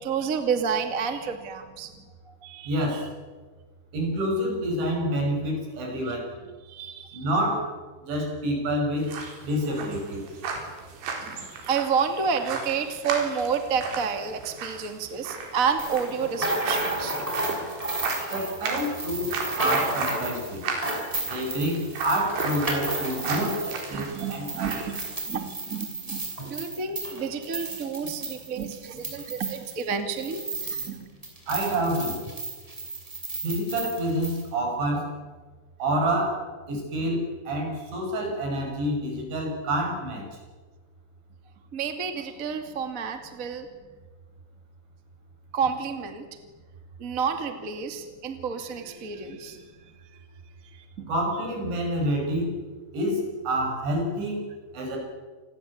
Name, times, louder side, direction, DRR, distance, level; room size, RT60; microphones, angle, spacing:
voice 1, 0.0-1.9 2.3-3.0 6.6-7.3 11.2-17.2 18.2-18.3 23.2-23.5 23.9-25.0 25.3-26.2 26.5-30.4 30.7-31.1 34.9-35.0 41.7-43.7 45.5-46.2 47.0-49.7 50.7-51.1, right 6 dB, 30° right, 6 dB, 1.5 m, -30 dB
voice 2, 2.7-3.1 3.9-6.3 7.1-7.7 8.0-9.1 9.4-10.2 18.3-20.6 21.3-24.8 31.5-32.2 33.4-35.1 35.8-36.4 36.7-40.2 51.1-52.5 52.9-54.5 54.7-55.0, right 1 dB, 70° right, 2 dB, 8.5 m, -28 dB
sound 1, 9.0-25.2, right 4 dB, 85° right, 6.6 m, -35 dB
sound 2, 15.8-31.0 31.2-34.4, right 2 dB, 5° right, 5.7 m, -33 dB
28.0 x 20.5 x 8.6 m, 1.4 s
omnidirectional pair, 5.5 m